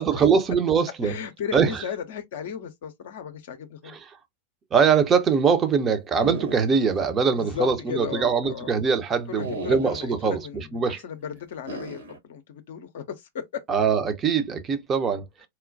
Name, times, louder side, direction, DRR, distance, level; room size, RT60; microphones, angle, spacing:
voice 1, 0.0-1.1 1.5-1.8 3.9-4.1 4.7-11.0 13.7-15.3, right 6 dB, 25° right, 0.7 m, -22 dB
voice 2, 1.0-4.0 7.3-8.7 9.3-13.6, left 7 dB, 55° left, 0.6 m, -35 dB
sound 1, 6.2-7.0 7.4-7.5 9.4-10.2 11.7-12.2, right 1 dB, 65° right, 1.9 m, -35 dB
4.2 x 2.2 x 2.6 m
figure-of-eight pair, 90°, 0 cm